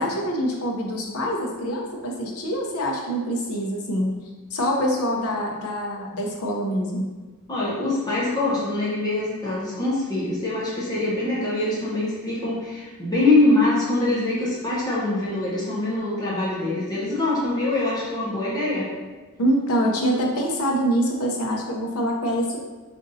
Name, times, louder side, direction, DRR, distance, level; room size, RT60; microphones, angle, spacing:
voice 1, 0.0-4.1 4.5-7.1 19.4-22.6, equal, 80° left, 0 dB, 0.7 m, -25 dB
voice 2, 7.5-18.9, left 2 dB, 20° left, -8 dB, 0.8 m, -24 dB
5.1 x 2.6 x 2.7 m, 1.3 s
head